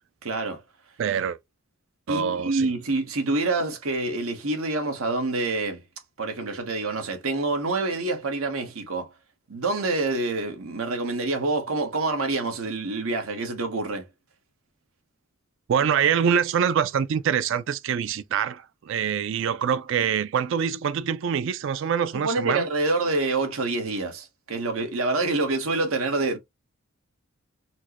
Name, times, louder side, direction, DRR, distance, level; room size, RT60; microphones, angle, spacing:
voice 1, 0.2-0.6 2.1-5.8 6.2-9.1 9.5-14.1 22.1-26.4, right 2 dB, 85° right, 1.1 m, -27 dB
voice 2, 1.0-1.4 2.1-2.7 15.7-22.7, right 7 dB, 60° right, 0.3 m, -25 dB
4.4 x 2.1 x 2.8 m
head